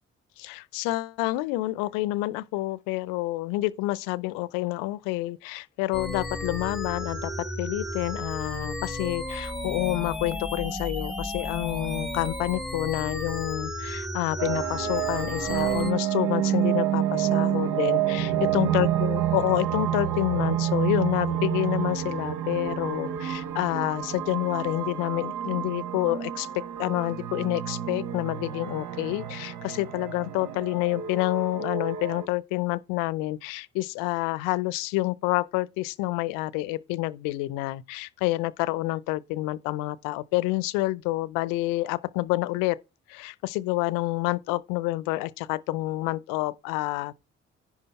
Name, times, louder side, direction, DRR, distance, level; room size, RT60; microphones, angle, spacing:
voice 1, 0.4-42.8 43.1-47.1, left 19 dB, 70° left, 0.6 m, -28 dB
sound 1, 5.9-15.9, left 1 dB, ahead, 1.4 m, -33 dB
sound 2, 14.4-32.3, right 11 dB, 65° right, 0.8 m, -29 dB
10.5 x 4.8 x 4.1 m
hypercardioid pair, 40°, 33 cm